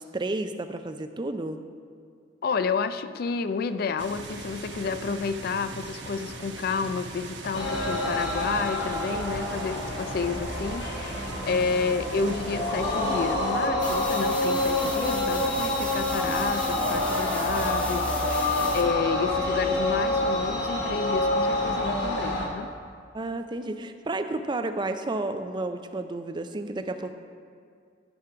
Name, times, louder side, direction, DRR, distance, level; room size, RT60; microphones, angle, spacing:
voice 1, 0.0-1.6 23.1-27.1, right 2 dB, 25° right, 8 dB, 0.4 m, -31 dB
voice 2, 2.4-22.7, left 5 dB, 55° left, 12 dB, 0.3 m, -30 dB
sound 1, 4.0-13.7, right 3 dB, 70° right, 1.0 m, -40 dB
sound 2, 7.5-22.5, left 1 dB, 80° left, 1.8 m, -27 dB
sound 3, 13.8-18.8, left 1 dB, 5° left, 0.8 m, -38 dB
12.0 x 5.3 x 5.7 m, 2.3 s
head